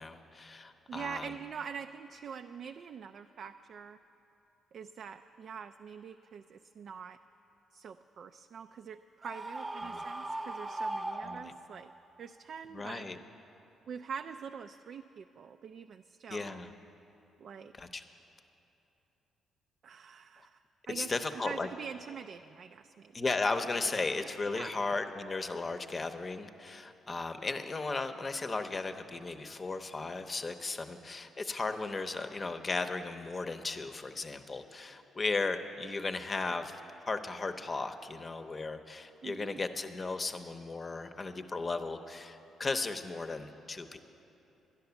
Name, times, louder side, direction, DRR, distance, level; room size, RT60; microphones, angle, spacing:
voice 1, 0.0-1.3 9.8-10.0 11.2-11.5 12.7-13.2 16.3-16.7 17.8-18.0 20.9-21.7 23.1-36.8 37.1-44.0, left 3 dB, 30° left, 8 dB, 0.7 m, -36 dB
voice 2, 0.9-4.0 4.7-7.2 7.7-11.9 12.2-13.1 13.9-16.6 17.4-17.7 19.8-20.6 20.9-23.3 23.6-23.7 24.5-24.7 39.2-39.6, right 7 dB, 60° right, 8 dB, 0.3 m, -45 dB
Screaming, 9.2-11.9, right 2 dB, 25° right, 0.8 m, -39 dB
11.0 x 10.5 x 6.9 m, 2.9 s
cardioid pair, 90°, 0 cm